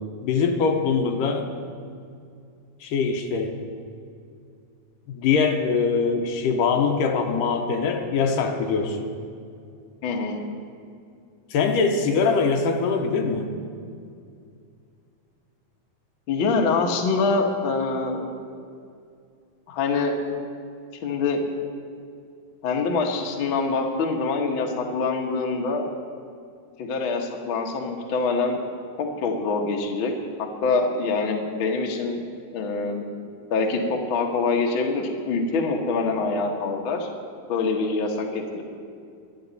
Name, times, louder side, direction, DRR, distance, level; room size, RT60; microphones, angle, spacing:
voice 1, 0.0-1.5 2.8-3.6 5.1-9.1 11.5-13.5, left 5 dB, 75° left, 4 dB, 2.5 m, -23 dB
voice 2, 10.0-10.4 16.3-18.2 19.7-20.2 21.0-21.4 22.6-25.9 26.8-28.6 29.0-30.1 30.4-32.2 32.5-33.1 33.5-37.1 37.5-38.6, left 4 dB, 60° left, 1 dB, 1.3 m, -25 dB
24.5 x 8.8 x 4.0 m, 2.4 s
omnidirectional pair, 4.0 m